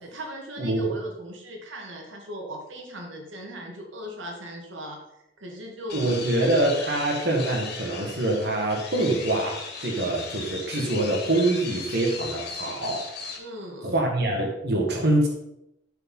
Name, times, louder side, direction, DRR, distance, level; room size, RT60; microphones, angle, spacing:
voice 1, 0.0-5.0 5.4-6.3 13.4-13.9, equal, 80° right, 1 dB, 2.2 m, -38 dB
voice 2, 0.6-0.9 5.9-13.1 13.8-15.3, right 1 dB, 60° right, -1 dB, 1.9 m, -25 dB
sound 1, 5.9-13.4, left 4 dB, 60° left, 2.5 m, -37 dB
12.5 x 5.0 x 5.5 m, 0.84 s
head